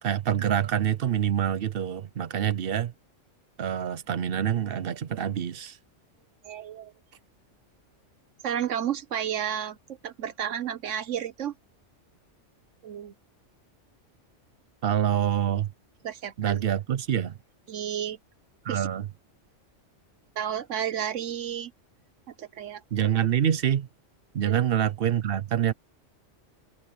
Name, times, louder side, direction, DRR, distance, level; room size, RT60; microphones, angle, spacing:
voice 1, 0.0-2.9 3.6-5.8 14.8-15.7 16.4-17.4 18.6-19.1 22.9-23.9 24.3-25.7, right 10 dB, 55° right, 0.8 m, -26 dB
voice 2, 6.4-6.9 8.4-9.8 10.0-11.5 12.8-13.1 16.0-16.6 17.7-18.2 18.7-18.9 20.4-21.7 22.4-22.8 24.5-24.6, right 9 dB, 90° right, 1.3 m, -31 dB
omnidirectional pair, 1.2 m